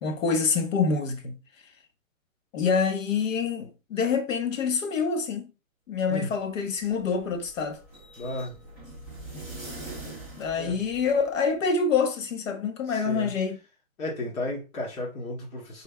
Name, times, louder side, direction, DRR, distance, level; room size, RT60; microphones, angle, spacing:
voice 1, 0.0-1.4 2.5-5.5 5.9-7.8 10.4-13.6, left 5 dB, 70° left, 1.3 m, -26 dB
sound 1, 6.5-11.5, right 2 dB, 10° left, 0.4 m, -43 dB
voice 2, 8.2-8.5 10.6-10.8 12.9-13.3 14.0-15.8, left 1 dB, 85° left, 2.3 m, -33 dB
5.6 x 4.1 x 2.3 m
hypercardioid pair, 155°, 41 cm